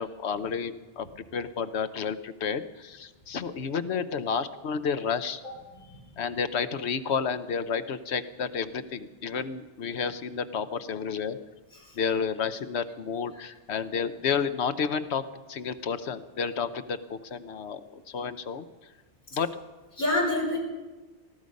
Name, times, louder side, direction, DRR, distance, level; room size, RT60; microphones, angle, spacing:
voice 1, 0.0-5.4 6.2-11.4 11.9-15.2 15.5-18.6 19.3-19.5, left 6 dB, 70° left, 11 dB, 1.1 m, -31 dB
voice 2, 20.0-20.6, left 1 dB, 45° left, -2 dB, 4.3 m, -28 dB
19.5 x 14.0 x 5.3 m, 1.2 s
omnidirectional pair, 1.2 m